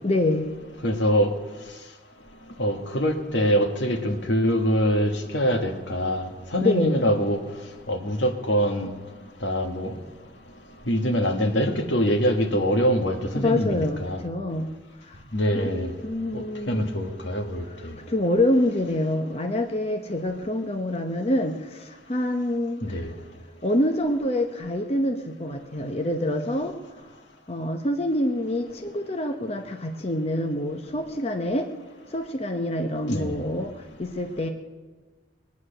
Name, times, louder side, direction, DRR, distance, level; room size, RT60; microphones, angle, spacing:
voice 1, 0.0-0.5 6.6-7.0 13.4-14.7 15.0-15.2 15.5-15.7 16.0-17.0 18.1-23.0 23.6-26.7 27.5-31.7 32.1-34.5, left 1 dB, 35° left, 0.8 m, -26 dB
voice 2, 0.8-1.3 2.6-7.4 7.9-8.9 9.4-10.0 10.9-14.2 15.3-15.9 16.3-17.9 22.8-23.1 33.1-33.3, equal, 75° left, 1.7 m, -24 dB
20.5 x 9.5 x 6.6 m
head